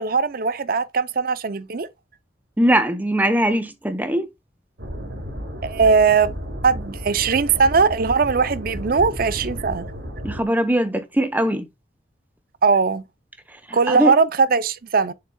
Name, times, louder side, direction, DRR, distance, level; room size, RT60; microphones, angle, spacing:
voice 1, 0.0-1.9 5.6-6.4 6.6-9.8 12.6-13.0 13.7-15.1, right 5 dB, 50° right, 0.5 m, -19 dB
voice 2, 2.6-4.3 10.2-11.7 13.7-14.1, right 1 dB, 10° right, 0.8 m, -21 dB
sound 1, 4.8-10.4, equal, 70° right, 2.6 m, -32 dB
7.3 x 6.5 x 2.2 m
head